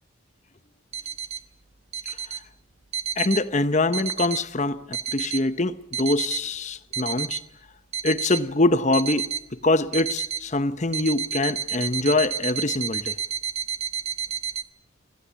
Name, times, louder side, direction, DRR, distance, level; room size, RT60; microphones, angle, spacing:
sound 1, 0.9-1.4 1.9-2.4 2.9-3.4 3.9-4.4 4.9-5.4 5.9-6.4 6.9-7.4 7.9-8.4 8.9-9.4 9.9-10.4 10.9-14.6, right 7 dB, 30° right, 0.9 m, -30 dB
voice 1, 3.2-7.4 8.0-13.2, left 2 dB, 35° left, 0.9 m, -24 dB
26.0 x 16.5 x 8.5 m
head